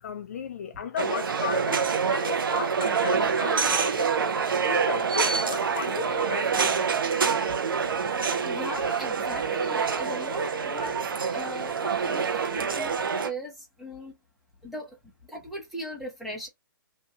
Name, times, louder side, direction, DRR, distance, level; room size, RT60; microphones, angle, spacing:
voice 1, 0.0-4.3 4.6-7.0, left 7 dB, 40° left, 0.4 m, -35 dB
sound 1, 1.0-13.3, right 6 dB, 75° right, 0.9 m, -26 dB
voice 2, 8.2-11.0 11.3-14.1 14.6-15.0 15.3-16.5, equal, ahead, 0.8 m, -38 dB
2.9 x 2.6 x 3.5 m
hypercardioid pair, 160°, 12 cm